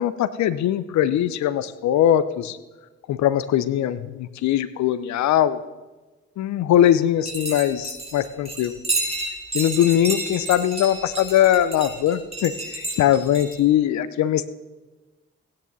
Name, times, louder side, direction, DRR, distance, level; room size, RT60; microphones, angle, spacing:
voice 1, 0.0-2.6 3.1-5.6 6.4-8.8 9.5-12.5 12.9-14.5, left 11 dB, 70° left, 15 dB, 0.7 m, -21 dB
sound 1, 7.3-13.5, right 2 dB, 20° right, 4.5 m, -30 dB
16.5 x 9.6 x 4.1 m, 1.2 s
hypercardioid pair, 50°, 30 cm